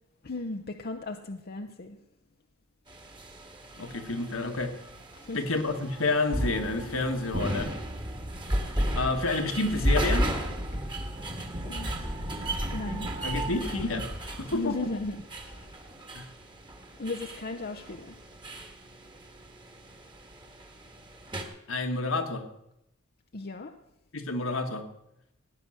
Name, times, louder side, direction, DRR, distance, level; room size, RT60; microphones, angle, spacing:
voice 1, 0.2-2.0 5.1-5.4 10.7-10.8 11.6-12.1 12.4-13.3 14.4-15.8 17.0-18.2 23.3-23.8, left 2 dB, 45° left, 5 dB, 0.7 m, -36 dB
sound 1, 2.9-21.4, equal, 20° right, 1.8 m, -34 dB
voice 2, 3.8-4.8 5.3-7.7 9.0-10.3 13.2-14.7 16.1-16.3 21.7-22.4 24.1-24.8, left 3 dB, 70° left, 5 dB, 1.6 m, -29 dB
17.0 x 9.5 x 6.4 m, 0.85 s
head